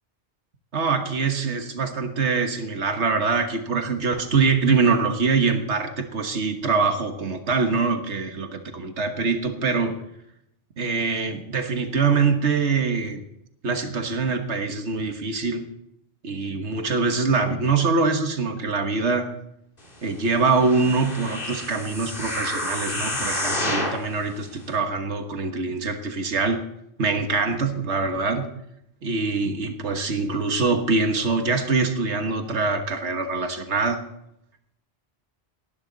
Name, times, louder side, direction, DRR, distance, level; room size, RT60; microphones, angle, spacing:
voice 1, 0.7-9.9 10.8-13.2 13.6-15.6 16.2-19.3 20.0-26.6 27.0-28.5 29.0-34.0, right 4 dB, 85° right, 6 dB, 1.7 m, -24 dB
sound 1, 20.5-24.1 24.7-24.8, left 1 dB, 50° left, 3.0 m, -29 dB
18.5 x 12.0 x 4.0 m, 0.77 s
omnidirectional pair, 1.1 m